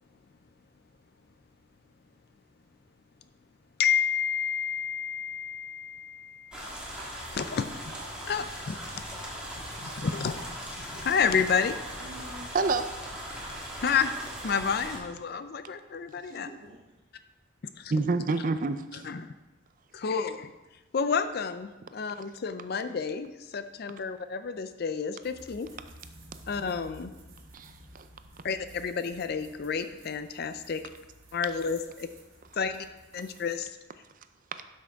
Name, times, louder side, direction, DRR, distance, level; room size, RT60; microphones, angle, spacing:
voice 1, 3.8-6.6 7.5-7.8 8.3-9.0 10.0-11.8 13.8-14.1 14.4-16.5 17.8-17.9 19.0-19.3 19.9-20.5 20.9-25.7 26.5-27.1 28.4-30.8 31.3-32.1 32.6-32.9 33.1-33.7, left 6 dB, 50° left, 10 dB, 0.4 m, -30 dB
sound 1, 6.5-15.0, equal, 5° right, 1.6 m, -39 dB
voice 2, 9.2-9.8 12.0-12.5 16.3-16.8, right 1 dB, 60° right, -5 dB, 1.3 m, -49 dB
voice 3, 17.9-19.1 27.5-28.1 34.5-34.6, right 3 dB, 40° right, 10 dB, 0.5 m, -28 dB
sound 2, 25.2-33.6, right 1 dB, 85° right, 2.2 m, -53 dB
12.0 x 6.2 x 3.5 m, 1.1 s
head